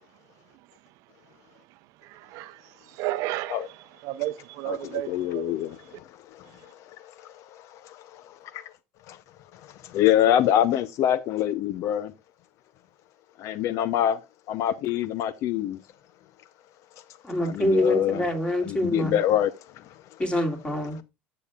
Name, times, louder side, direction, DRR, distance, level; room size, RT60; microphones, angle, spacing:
voice 1, 2.0-3.8 4.0-5.5, right 16 dB, 65° right, 0.6 m, -33 dB
voice 2, 4.7-6.5 6.8-8.6 9.1-9.2 9.5-12.1 13.4-14.2 14.5-15.8 17.4-18.3 18.6-19.8, left 11 dB, 55° left, 0.5 m, -26 dB
voice 3, 17.2-19.2 20.2-21.0, equal, 15° left, 2.6 m, -25 dB
12.0 x 6.8 x 2.3 m
supercardioid pair, 110°, 6 cm